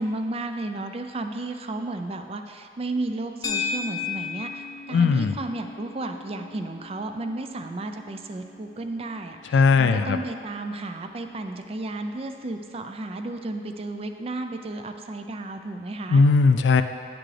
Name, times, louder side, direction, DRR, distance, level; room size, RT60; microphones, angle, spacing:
voice 1, 0.0-16.2, right 2 dB, 35° right, 6 dB, 0.4 m, -33 dB
sound 1, 3.4-11.9, left 5 dB, 20° left, 0.6 m, -37 dB
voice 2, 4.9-5.3 9.5-10.2 16.1-16.8, left 4 dB, 85° left, 10 dB, 0.3 m, -18 dB
8.9 x 6.0 x 3.3 m, 2.5 s
head